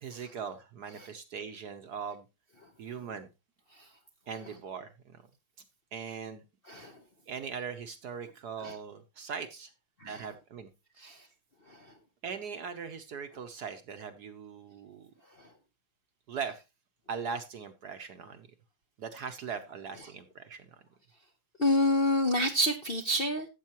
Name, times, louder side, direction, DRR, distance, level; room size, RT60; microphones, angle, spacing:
voice 1, 0.0-2.3 2.8-3.3 4.3-5.2 5.9-6.4 7.3-9.7 10.0-10.7 12.2-15.1 16.3-16.6 17.1-18.5 19.0-20.8, right 6 dB, 60° right, 1.2 m, -40 dB
voice 2, 21.6-23.5, left 1 dB, 40° left, 0.8 m, -28 dB
13.0 x 8.1 x 3.0 m
omnidirectional pair, 2.3 m